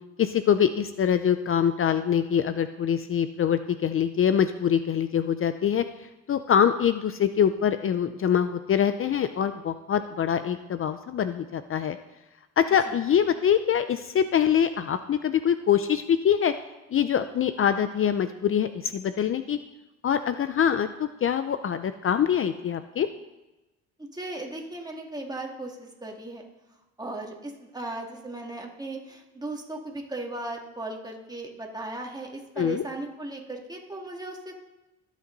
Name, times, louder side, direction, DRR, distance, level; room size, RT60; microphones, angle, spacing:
voice 1, 0.2-5.8 6.3-12.0 12.6-16.5 16.9-19.6 20.0-20.9 21.2-23.1 32.6-32.8, left 8 dB, 45° left, 11 dB, 0.6 m, -24 dB
voice 2, 24.0-26.5 27.0-34.5, right 2 dB, 15° right, 0 dB, 2.3 m, -37 dB
21.0 x 8.3 x 4.0 m, 1.0 s
cardioid pair, 90°, 30 cm